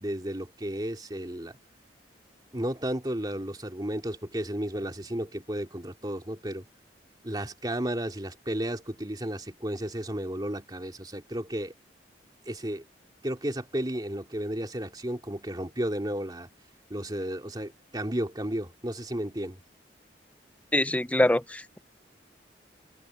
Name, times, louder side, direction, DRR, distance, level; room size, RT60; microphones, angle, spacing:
voice 1, 0.0-1.6 2.5-6.6 7.2-11.7 12.5-12.8 13.2-16.5 16.9-19.6, right 1 dB, 25° right, 2.9 m, -33 dB
voice 2, 20.7-21.8, left 1 dB, 10° left, 0.5 m, -24 dB
head